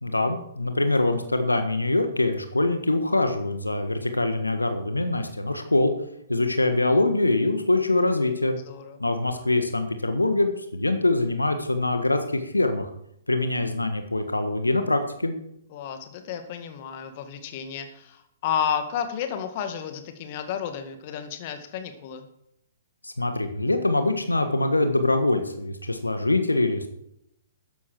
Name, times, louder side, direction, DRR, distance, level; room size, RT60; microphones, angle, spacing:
voice 1, 0.0-5.9 6.3-8.6 9.0-12.9 13.3-15.3 23.0-26.9, left 2 dB, 85° left, 7 dB, 1.5 m, -24 dB
voice 2, 8.7-9.0 15.7-22.3, left 8 dB, 40° left, 7 dB, 1.9 m, -32 dB
13.0 x 11.0 x 4.6 m, 0.75 s
figure-of-eight pair, 120°, 0 cm